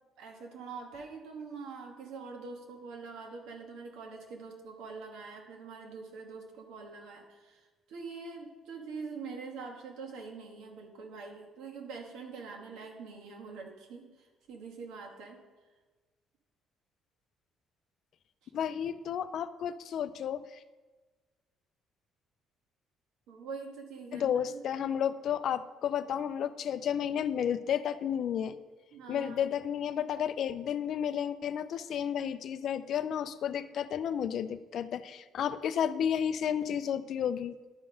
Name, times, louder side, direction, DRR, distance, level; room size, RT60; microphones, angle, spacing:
voice 1, 0.2-15.4 18.4-18.5 23.3-24.6 28.9-29.5, right 4 dB, 85° right, 2 dB, 1.4 m, -44 dB
voice 2, 18.5-20.6 24.1-28.6 29.1-37.5, left 9 dB, 55° left, 13 dB, 0.3 m, -32 dB
11.5 x 3.9 x 5.1 m, 1.3 s
cardioid pair, 145°, 0 cm